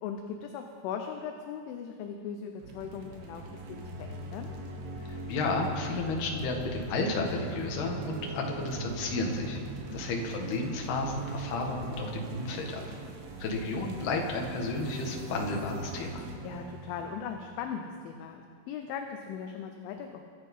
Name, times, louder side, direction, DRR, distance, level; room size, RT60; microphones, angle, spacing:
voice 1, 0.0-4.5 9.8-10.0 16.4-20.2, left 7 dB, 80° left, 4 dB, 3.2 m, -39 dB
sound 1, 2.6-18.0, right 3 dB, 60° right, 2.7 m, -41 dB
voice 2, 5.0-9.6 9.9-12.8 13.4-16.2, left 3 dB, 60° left, 1 dB, 3.5 m, -32 dB
24.0 x 10.5 x 5.6 m, 2.3 s
omnidirectional pair, 5.9 m